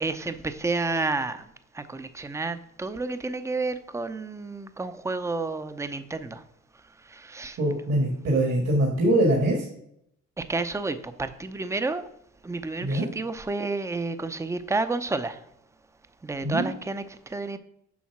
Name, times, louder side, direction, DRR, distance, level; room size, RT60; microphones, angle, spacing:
voice 1, 0.0-6.4 7.0-7.6 10.4-12.1 12.4-15.4 16.2-17.6, right 3 dB, 10° right, 11 dB, 0.6 m, -30 dB
voice 2, 7.6-9.7 12.8-13.1 16.4-16.7, right 1 dB, 55° right, 0 dB, 1.7 m, -23 dB
7.2 x 5.5 x 6.0 m, 0.75 s
cardioid pair, 100°, 29 cm